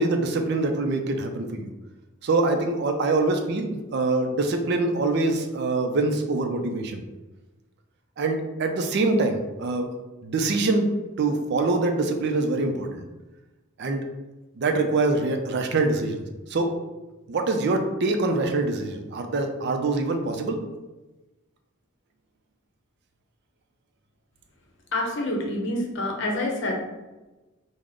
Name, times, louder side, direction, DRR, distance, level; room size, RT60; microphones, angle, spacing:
voice 1, 0.0-1.7 2.2-7.0 8.2-9.9 10.2-10.9 11.2-13.0 13.8-14.0 14.6-16.2 16.5-16.8 17.3-20.6, right 3 dB, 55° right, 5 dB, 0.4 m, -24 dB
voice 2, 24.9-26.8, left 1 dB, 65° left, 0 dB, 0.7 m, -27 dB
3.6 x 2.0 x 3.5 m, 1.1 s
head